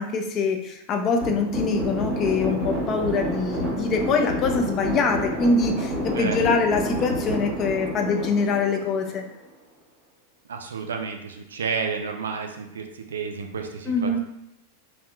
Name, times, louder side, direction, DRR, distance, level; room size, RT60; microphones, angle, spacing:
voice 1, 0.0-9.2 13.9-14.2, left 4 dB, 35° left, 4 dB, 0.4 m, -24 dB
sound 1, 1.2-9.5, equal, 10° right, 1.2 m, -29 dB
voice 2, 10.5-14.2, right 5 dB, 65° right, 4 dB, 0.3 m, -31 dB
3.4 x 2.4 x 2.3 m, 0.81 s
figure-of-eight pair, 90°, 0 cm